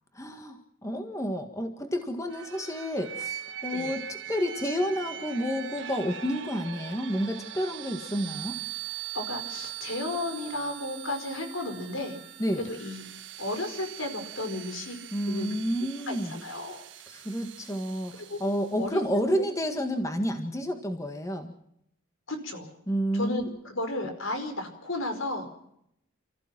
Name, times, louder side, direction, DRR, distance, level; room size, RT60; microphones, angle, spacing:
voice 1, 0.1-8.5 12.4-12.7 15.1-16.4 17.1-21.5 22.9-23.4, equal, 15° left, 6 dB, 1.7 m, -30 dB
sound 1, 2.3-19.0, right 11 dB, 60° right, 1.5 m, -41 dB
voice 2, 9.1-12.2 12.6-13.0 13.4-15.0 15.3-15.5 16.1-16.8 18.3-18.4 18.8-18.9 22.3-22.7 23.1-25.5, left 2 dB, 80° left, 6 dB, 5.0 m, -33 dB
29.5 x 15.0 x 6.0 m, 0.75 s
head